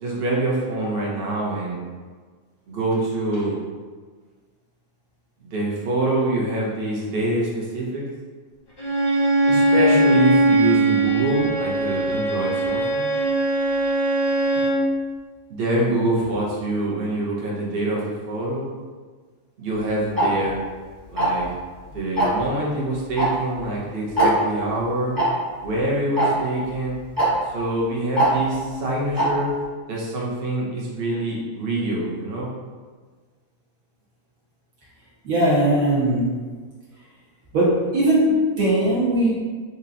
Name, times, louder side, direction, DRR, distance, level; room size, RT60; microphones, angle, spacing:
voice 1, 0.0-1.8 2.7-3.6 5.4-8.0 9.5-13.1 15.5-18.6 19.6-20.6 21.1-21.5 21.8-25.2 25.6-27.0 27.4-29.5 29.9-32.5, right 1 dB, 50° right, -4 dB, 0.8 m, -25 dB
Bowed string instrument, 8.8-14.9, right 2 dB, 35° left, 0.4 m, -20 dB
Tick-tock, 20.2-20.3 21.2-21.5 22.2-22.4 23.2-23.3 23.6-23.7 24.2-24.3 25.2-25.3 26.2-26.3 27.2-27.3 28.2-28.3 29.2-29.3, right 2 dB, 20° right, 0.7 m, -19 dB
voice 2, 35.2-36.3 37.5-39.3, right 1 dB, 80° right, -8 dB, 1.7 m, -19 dB
4.1 x 2.9 x 2.6 m, 1.5 s
omnidirectional pair, 1.5 m